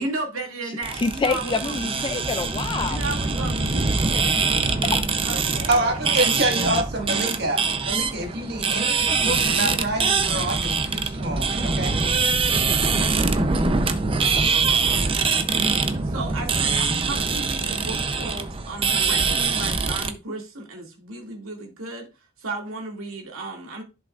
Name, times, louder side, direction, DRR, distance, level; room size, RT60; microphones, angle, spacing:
voice 1, 0.0-2.1 2.8-3.9 5.2-6.9 8.2-8.3 14.5-15.2 15.8-23.8, right 2 dB, 80° right, 2.3 m, -34 dB
voice 2, 0.6-3.0 4.1-5.0, left 4 dB, 20° left, 0.3 m, -28 dB
sound 1, 0.8-20.1, right 4 dB, 25° right, 0.6 m, -23 dB
voice 3, 5.7-12.0, right 1 dB, 50° right, 1.7 m, -27 dB
11.0 x 6.0 x 2.5 m
head